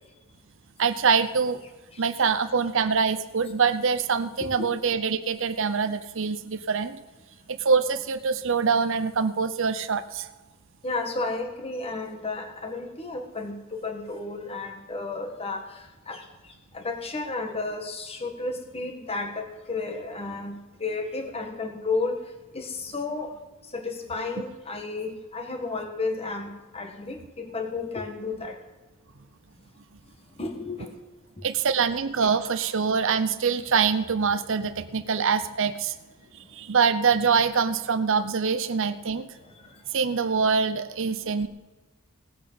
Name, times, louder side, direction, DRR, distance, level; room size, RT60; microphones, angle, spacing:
voice 1, 0.8-1.6 2.0-7.0 7.5-10.3 31.4-35.9 36.3-39.3 39.9-41.5, right 5 dB, 60° right, 11 dB, 0.7 m, -24 dB
voice 2, 10.8-16.2 16.7-22.2 22.5-23.3 23.7-28.6 30.4-31.1 40.5-40.6 41.1-41.4, left 3 dB, 30° left, 4 dB, 1.7 m, -32 dB
18.5 x 8.5 x 5.6 m, 1.2 s
head